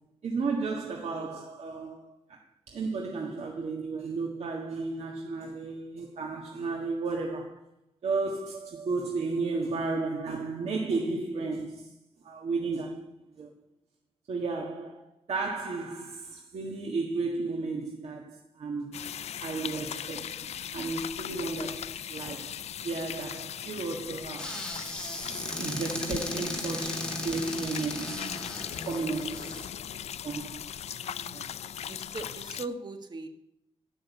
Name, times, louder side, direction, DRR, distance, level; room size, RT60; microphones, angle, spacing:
voice 1, 0.2-2.4 2.7-7.6 8.0-11.9 12.2-13.5 14.3-15.0 15.3-25.0 25.5-28.3 28.9-29.7 30.2-30.6 31.3-31.5, right 3 dB, 75° right, 1.7 m, -33 dB
sound 1, 18.9-32.7, left 9 dB, 75° left, 0.4 m, -39 dB
Squeak / Cupboard open or close, 24.4-29.7, left 1 dB, 10° left, 2.7 m, -36 dB
voice 2, 29.2-29.5 31.0-33.3, right 3 dB, 40° right, 1.5 m, -41 dB
12.0 x 6.3 x 8.4 m
wide cardioid pair, 95°, 11 cm